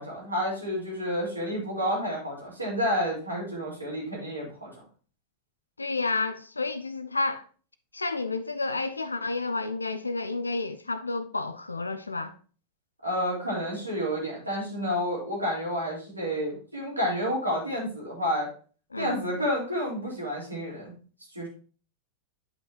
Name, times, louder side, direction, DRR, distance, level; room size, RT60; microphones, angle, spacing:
voice 1, 0.0-4.7 13.0-18.5 19.0-20.9 21.3-21.5, equal, 85° right, 3.8 m, -30 dB
voice 2, 5.8-7.4 7.9-12.3 18.9-19.2, left 3 dB, 80° left, 0.5 m, -30 dB
9.3 x 5.7 x 2.9 m
figure-of-eight pair, 90°, 0 cm